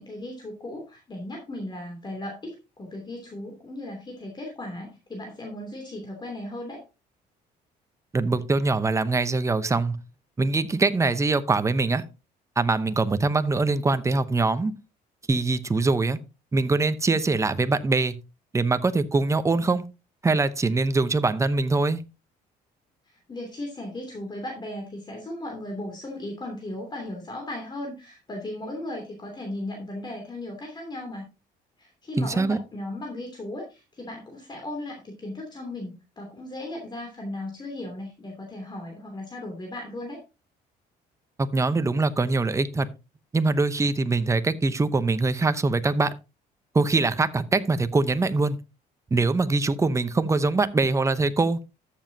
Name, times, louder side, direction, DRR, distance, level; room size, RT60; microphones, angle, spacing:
voice 1, 0.0-6.8 23.1-31.3 31.8-40.2, left 1 dB, 25° left, 2.9 m, -36 dB
voice 2, 8.1-10.0 10.4-12.0 12.6-14.7 15.3-16.2 16.5-18.1 18.5-19.8 20.2-22.0 32.2-32.6 41.4-42.9 43.3-46.1 46.7-48.6 49.1-51.6, right 3 dB, 15° right, 0.8 m, -23 dB
13.0 x 7.3 x 2.8 m
cardioid pair, 110°, 17 cm